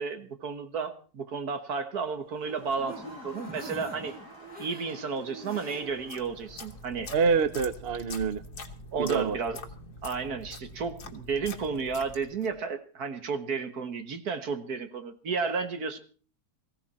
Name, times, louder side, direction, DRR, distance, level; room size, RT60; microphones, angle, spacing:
voice 1, 0.0-4.2 4.6-7.1 8.9-9.6 10.0-16.0, right 5 dB, 70° right, 9 dB, 2.0 m, -32 dB
sound 1, 2.2-6.2 6.6-6.7 7.0-7.1, right 1 dB, 5° right, 5.5 m, -45 dB
Crowd, 2.3-7.2, equal, 90° right, 8.7 m, -51 dB
sound 2, 5.9-12.6, left 2 dB, 90° left, 2.0 m, -44 dB
voice 2, 7.1-8.4 9.0-9.4, right 5 dB, 45° right, 14 dB, 0.9 m, -26 dB
19.0 x 15.5 x 4.3 m, 0.39 s
omnidirectional pair, 1.7 m